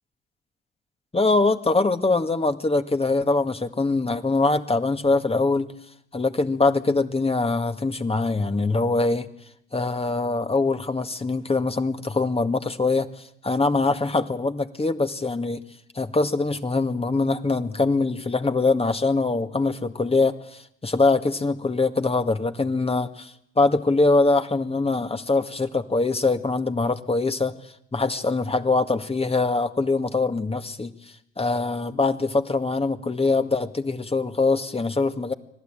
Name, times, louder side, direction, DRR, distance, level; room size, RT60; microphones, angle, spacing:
voice 1, 1.1-5.7 6.1-9.3 9.7-13.1 13.4-15.6 16.0-27.5 27.9-30.9 31.4-35.3, left 3 dB, 20° left, 8 dB, 1.9 m, -23 dB
25.5 x 16.5 x 9.1 m, 0.75 s
hypercardioid pair, 55°, 29 cm